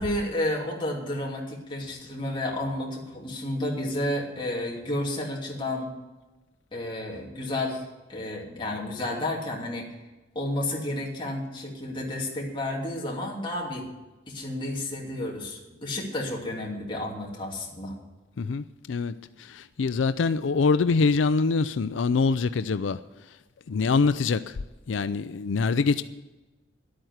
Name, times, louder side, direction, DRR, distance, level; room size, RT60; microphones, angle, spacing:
voice 1, 0.0-5.9 6.7-7.8 8.1-9.8 10.3-13.9 14.3-18.0, left 1 dB, 25° left, 2.8 m, -31 dB
voice 2, 18.4-19.1 19.4-23.0 23.7-24.5 24.9-26.0, left 4 dB, 90° left, 0.5 m, -24 dB
11.5 x 8.8 x 8.0 m
head